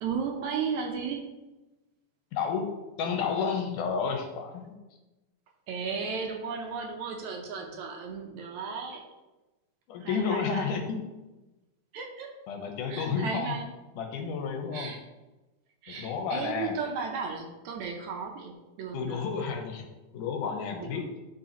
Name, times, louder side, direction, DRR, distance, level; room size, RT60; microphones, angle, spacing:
voice 1, 0.0-1.3 5.7-9.0 10.0-10.8 11.9-12.3 12.9-13.7 14.7-15.0 15.8-19.3 20.8-21.0, right 5 dB, 75° right, 2 dB, 2.0 m, -35 dB
voice 2, 2.3-4.8 9.9-11.0 12.5-13.6 14.0-15.0 15.9-16.8 18.9-19.9 20.1-21.1, left 6 dB, 90° left, 3 dB, 2.5 m, -31 dB
12.0 x 4.7 x 3.0 m, 1.1 s
omnidirectional pair, 3.6 m